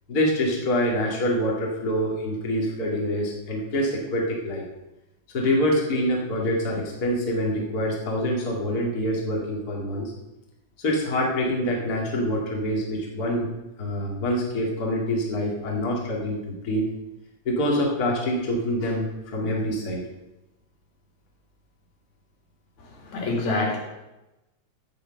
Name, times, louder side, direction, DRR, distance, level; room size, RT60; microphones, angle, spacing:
voice 1, 0.1-4.6 5.3-10.1 10.8-13.5 13.8-16.8 17.4-20.0, equal, 35° left, -2 dB, 2.4 m, -25 dB
voice 2, 22.8-23.8, left 2 dB, 75° left, -1 dB, 3.7 m, -27 dB
14.5 x 5.1 x 7.6 m, 1.0 s
omnidirectional pair, 3.4 m